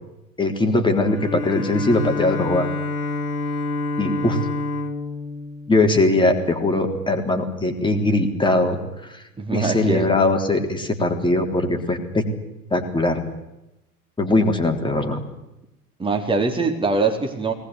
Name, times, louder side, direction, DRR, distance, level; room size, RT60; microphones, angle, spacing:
voice 1, 0.4-2.7 4.0-4.4 5.7-8.8 9.1-9.2 9.5-12.3 12.7-13.2 14.2-15.2, left 2 dB, 10° left, 4 dB, 3.6 m, -20 dB
Bowed string instrument, 1.0-6.6, left 3 dB, 70° left, 2.7 m, -28 dB
voice 2, 9.4-10.1 16.0-17.5, right 3 dB, 10° right, 3 dB, 4.0 m, -22 dB
21.5 x 19.5 x 9.8 m, 0.93 s
figure-of-eight pair, 85°, 45 cm